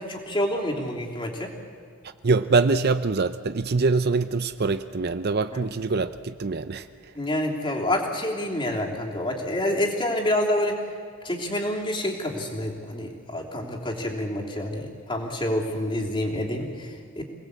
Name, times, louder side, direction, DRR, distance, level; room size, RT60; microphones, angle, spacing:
voice 1, 0.0-1.5 5.5-5.7 7.1-10.8 11.2-17.2, left 1 dB, 25° left, -1 dB, 3.3 m, -28 dB
voice 2, 2.0-6.9, right 4 dB, 45° right, 11 dB, 0.6 m, -24 dB
27.5 x 19.0 x 8.4 m, 2.1 s
head